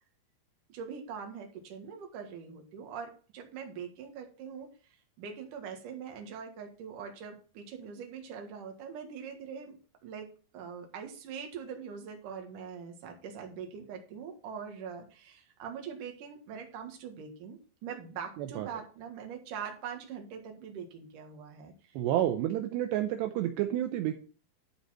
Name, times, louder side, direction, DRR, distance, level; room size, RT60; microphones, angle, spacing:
voice 1, 0.7-4.7 5.2-9.8 10.0-10.3 10.5-21.9, right 7 dB, 55° right, 3 dB, 2.8 m, -43 dB
voice 2, 18.4-18.7 21.9-24.1, right 12 dB, 80° right, 6 dB, 2.7 m, -30 dB
12.0 x 5.5 x 4.3 m, 0.38 s
omnidirectional pair, 5.1 m